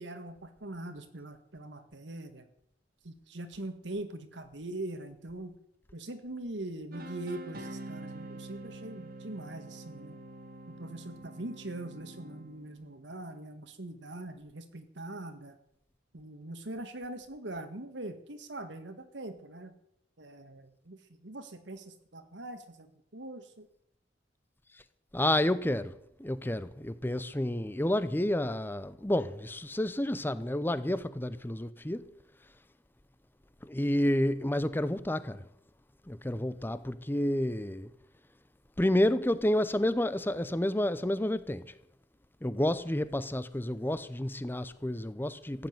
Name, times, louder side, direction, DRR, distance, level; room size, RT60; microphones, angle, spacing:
voice 1, 0.0-2.5 3.0-5.5 5.9-10.2 10.7-15.6 16.1-19.7 20.2-23.7, right 2 dB, 80° right, 1.8 m, -42 dB
sound 1, 6.9-12.8, right 2 dB, 55° right, 2.0 m, -46 dB
voice 2, 25.1-32.1 33.6-35.5 36.1-37.9 38.8-41.7 42.4-45.7, left 1 dB, 10° left, 0.7 m, -30 dB
15.0 x 8.1 x 9.4 m
head